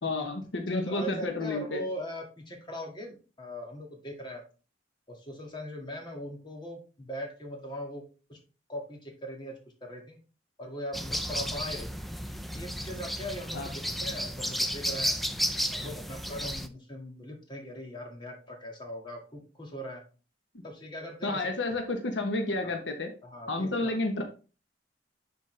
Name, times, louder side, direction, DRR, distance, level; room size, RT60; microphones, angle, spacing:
voice 1, 0.0-1.8 13.5-13.7 21.2-23.1 23.5-24.2, left 2 dB, 75° left, 4 dB, 1.0 m, -30 dB
voice 2, 0.7-4.4 5.1-8.0 8.3-8.4 8.7-10.2 10.6-11.9 12.5-15.2 15.7-20.0 20.6-21.5 22.6-22.8 23.2-24.0, equal, 25° left, 1 dB, 1.9 m, -40 dB
sound 1, 10.9-16.7, equal, ahead, 0.5 m, -33 dB
10.5 x 4.1 x 3.3 m, 0.35 s
head